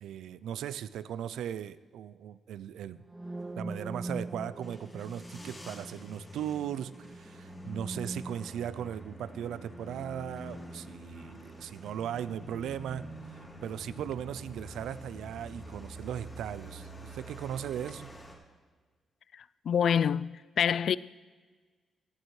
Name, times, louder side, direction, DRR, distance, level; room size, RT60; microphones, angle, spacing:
voice 1, 0.0-3.0 3.6-18.1, right 9 dB, 85° right, 0.4 m, -38 dB
sound 1, 3.0-10.9, right 2 dB, 15° right, 0.7 m, -44 dB
sound 2, 3.2-18.4, equal, 20° left, 3.1 m, -46 dB
voice 2, 19.3-21.0, left 8 dB, 65° left, 0.3 m, -27 dB
17.0 x 11.5 x 3.2 m
cardioid pair, 70°, 0 cm